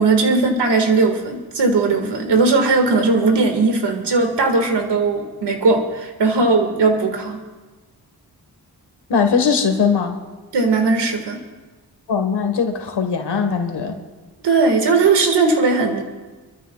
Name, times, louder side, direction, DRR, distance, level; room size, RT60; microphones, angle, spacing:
voice 1, 0.0-7.4 10.5-11.4 14.4-16.0, right 3 dB, 85° right, 4 dB, 1.9 m, -18 dB
voice 2, 9.1-10.2 12.1-14.0, left 6 dB, 85° left, 5 dB, 1.4 m, -20 dB
26.5 x 13.5 x 2.3 m, 1.3 s
cardioid pair, 65°, 40 cm